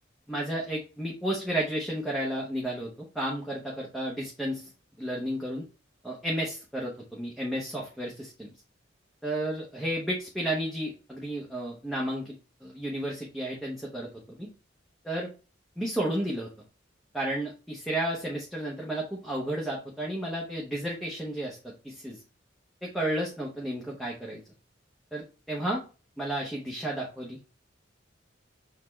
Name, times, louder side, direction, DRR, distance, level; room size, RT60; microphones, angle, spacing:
voice 1, 0.3-4.7 5.0-5.6 6.0-8.5 9.2-12.4 12.6-14.5 15.0-15.3 15.8-16.5 17.1-22.2 22.8-24.4 25.1-25.8 26.2-27.5, right 1 dB, ahead, -3 dB, 0.8 m, -32 dB
6.5 x 2.3 x 3.1 m, 0.33 s
head